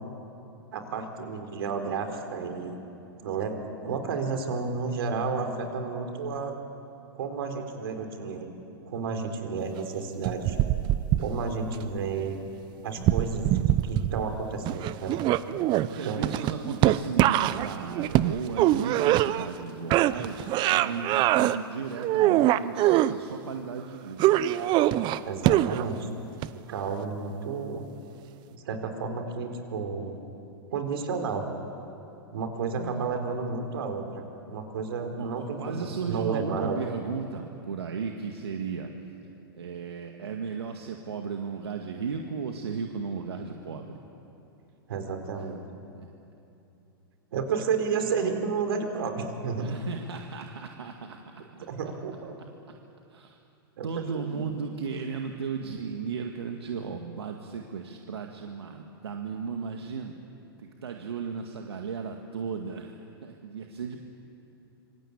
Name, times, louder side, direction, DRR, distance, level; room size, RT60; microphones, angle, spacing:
voice 1, 0.7-2.8 3.2-6.5 7.1-8.5 8.9-10.6 11.2-12.4 12.8-13.6 13.8-15.2 16.0-16.4 25.2-26.0 26.7-27.8 28.5-30.2 30.7-31.4 32.3-36.8 44.9-45.6 47.3-49.7 51.7-52.3 53.8-53.9 54.1-54.4, right 5 dB, 70° right, 5 dB, 4.2 m, -31 dB
sound 1, 10.3-11.8 13.0-14.4 14.7-19.6 19.9-21.6 22.0-23.1 24.2-26.0 26.4-26.5, right 14 dB, 35° right, 0.8 m, -23 dB
voice 2, 15.8-24.4 32.8-33.1 35.2-38.9 39.5-44.0 45.3-45.5 45.9-46.1 49.6-51.2 51.6-51.7 53.1-53.4 53.8-60.2 60.6-64.0, right 5 dB, 85° right, 3 dB, 1.9 m, -35 dB
26.5 x 24.5 x 8.8 m, 2.8 s
hypercardioid pair, 120°, 13 cm